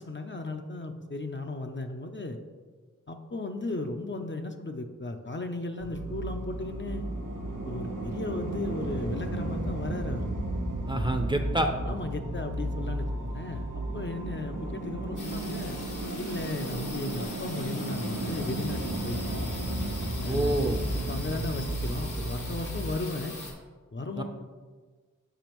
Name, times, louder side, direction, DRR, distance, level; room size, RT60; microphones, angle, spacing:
voice 1, 0.0-2.4 3.1-7.1 7.6-10.3 11.9-15.8 16.2-19.5 20.2-20.7 21.1-23.4 23.9-24.2, left 2 dB, 40° left, 5 dB, 0.5 m, -35 dB
sound 1, 5.8-22.9, right 1 dB, 80° right, 0.9 m, -33 dB
voice 2, 10.9-11.7 20.3-20.9 24.2-24.3, right 1 dB, 15° right, 4 dB, 0.5 m, -27 dB
sound 2, 15.2-23.5, left 2 dB, 80° left, 1.2 m, -41 dB
6.9 x 5.1 x 3.0 m, 1.4 s
wide cardioid pair, 50°, 31 cm